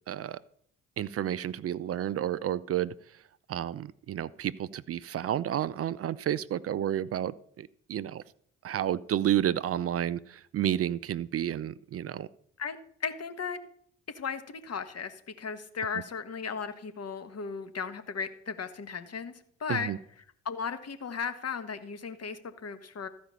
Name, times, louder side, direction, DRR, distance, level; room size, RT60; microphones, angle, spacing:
voice 1, 0.1-0.4 1.0-2.9 3.5-8.2 8.6-12.3 19.7-20.0, right 11 dB, 35° right, 17 dB, 0.5 m, -31 dB
voice 2, 12.6-13.6 14.1-19.3 19.6-19.9 20.4-23.1, left 6 dB, 40° left, 10 dB, 1.5 m, -36 dB
14.0 x 5.1 x 7.0 m, 0.64 s
figure-of-eight pair, 45°, 39 cm